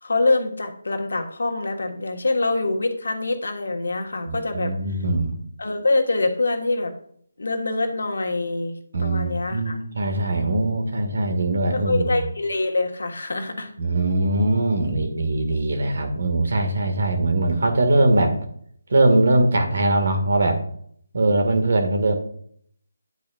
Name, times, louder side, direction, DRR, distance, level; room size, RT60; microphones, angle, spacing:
voice 1, 0.0-4.7 5.6-6.9 7.4-9.8 11.7-13.7, left 2 dB, 70° left, 4 dB, 1.5 m, -25 dB
voice 2, 4.3-5.4 8.9-12.3 13.8-18.4 18.9-20.6 21.1-22.1, right 2 dB, 60° right, 5 dB, 1.9 m, -21 dB
9.7 x 8.3 x 2.5 m, 0.63 s
figure-of-eight pair, 160°, 0 cm